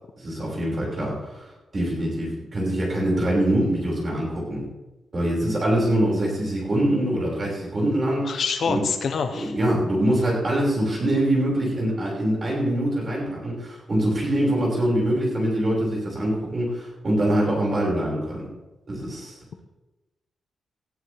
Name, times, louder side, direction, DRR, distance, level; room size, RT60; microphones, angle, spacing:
voice 1, 0.2-4.6 5.1-8.8 9.4-18.4 18.9-19.3, right 1 dB, 30° right, -3 dB, 5.8 m, -24 dB
voice 2, 8.2-9.5, left 5 dB, 50° left, 7 dB, 1.0 m, -26 dB
19.0 x 13.5 x 3.5 m, 1.0 s
wide cardioid pair, 180°, 0 cm